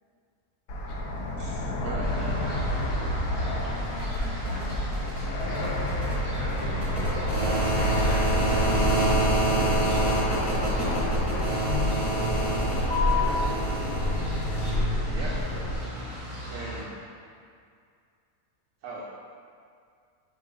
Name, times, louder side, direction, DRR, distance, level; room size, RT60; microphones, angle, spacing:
Fixed-wing aircraft airplane, 0.7-15.8, left 1 dB, 80° left, 1.1 m, -28 dB
voice 1, 1.4-3.2 6.4-9.0 15.1-15.4 16.5-16.9 18.8-19.0, right 3 dB, 70° right, -5 dB, 0.9 m, -39 dB
sound 1, 2.0-16.8, right 1 dB, 25° right, 1.3 m, -30 dB
voice 2, 3.7-5.5 10.8-11.0 16.0-16.1, left 1 dB, 60° left, -7 dB, 0.8 m, -43 dB
4.7 x 3.0 x 3.7 m, 2.2 s
omnidirectional pair, 1.5 m